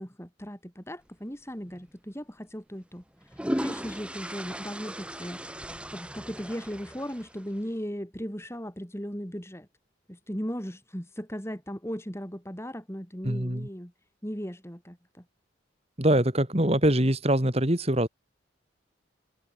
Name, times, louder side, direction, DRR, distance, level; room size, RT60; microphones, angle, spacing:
voice 1, 0.0-5.4 5.9-9.7 10.1-13.9 14.2-15.2, equal, 15° left, 7.1 m, -37 dB
sound 1, 1.7-1.9 3.0-7.6, equal, 5° right, 2.7 m, -36 dB
voice 2, 13.2-13.7 16.0-18.1, right 1 dB, 30° right, 3.0 m, -23 dB
head